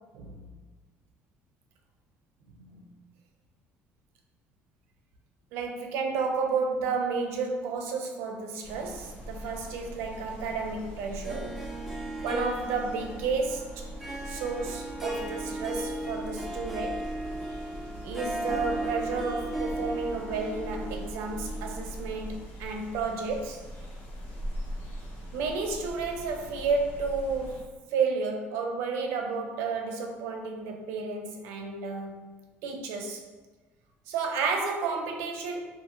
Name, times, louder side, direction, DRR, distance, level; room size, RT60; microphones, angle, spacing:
voice 1, 5.5-11.6 12.2-13.7 14.3-17.1 18.0-23.6 25.3-32.3 32.6-33.2 34.1-35.6, right 4 dB, 85° right, 3 dB, 0.5 m, -31 dB
sound 1, 8.6-27.6, equal, 75° left, 1.1 m, -41 dB
Harp, 11.2-22.4, right 1 dB, 5° right, 0.3 m, -36 dB
2.5 x 2.5 x 2.9 m, 1.3 s
cardioid pair, 155°, 4 cm